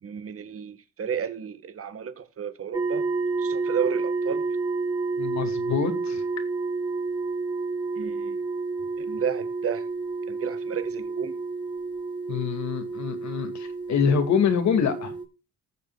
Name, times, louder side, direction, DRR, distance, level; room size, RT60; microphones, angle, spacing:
voice 1, 0.0-3.1 3.4-4.4 7.9-8.4 9.0-9.9 10.3-11.4, right 7 dB, 50° right, 1.6 m, -32 dB
sound 1, 2.7-15.2, right 3 dB, 15° right, 2.8 m, -30 dB
voice 2, 5.2-6.2 12.3-15.1, left 7 dB, 65° left, 2.3 m, -25 dB
19.5 x 6.8 x 2.4 m
cardioid pair, 90°, 30 cm